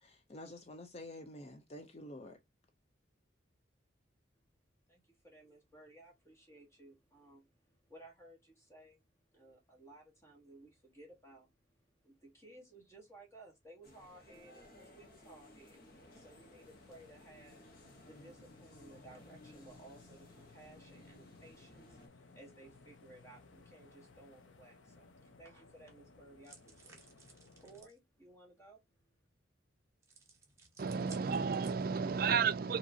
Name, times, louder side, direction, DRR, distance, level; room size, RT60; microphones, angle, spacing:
voice 1, 0.0-2.4, left 1 dB, 30° left, 0.5 m, -49 dB
voice 2, 4.9-9.0 9.3-11.5 12.0-17.6 18.1-25.1 25.4-28.8, right 2 dB, 15° left, 1.3 m, -58 dB
sound 1, 13.8-22.1, left 1 dB, 50° left, 1.3 m, -59 dB
sound 2, 14.9-27.9, left 3 dB, 80° left, 0.7 m, -61 dB
sound 3, 26.4-28.0 30.0-32.1, right 4 dB, 15° right, 1.1 m, -58 dB
voice 3, 30.8-32.8, right 6 dB, 50° right, 0.4 m, -32 dB
5.1 x 2.9 x 2.7 m
head